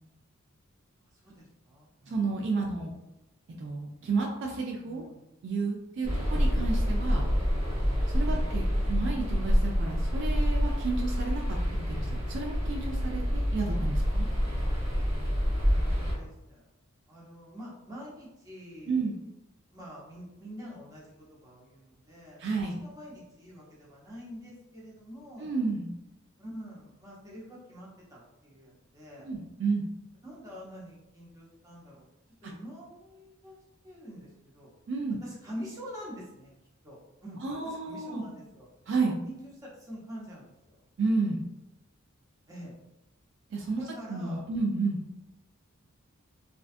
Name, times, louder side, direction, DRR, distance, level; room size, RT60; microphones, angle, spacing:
voice 1, 1.2-2.2 2.4-2.8 4.8-5.2 8.3-8.6 15.7-16.7 17.1-19.2 19.7-22.4 22.8-25.5 26.4-29.3 30.2-32.1 32.4-33.6 33.8-34.7 35.2-36.5 36.8-38.7 39.3-40.8 42.5-42.7 43.8-44.5, equal, 15° right, -6 dB, 0.7 m, -46 dB
voice 2, 2.1-2.9 3.5-5.0 5.4-7.3 8.1-14.3 18.9-19.1 22.4-22.8 25.4-25.9 29.2-29.9 32.4-32.5 34.9-35.2 37.4-38.2 38.9-39.2 41.0-41.4 43.5-45.0, right 3 dB, 55° right, 1 dB, 0.3 m, -31 dB
sound 1, 6.0-16.1, equal, 75° right, 1.0 m, -27 dB
2.5 x 2.2 x 2.4 m, 0.94 s
head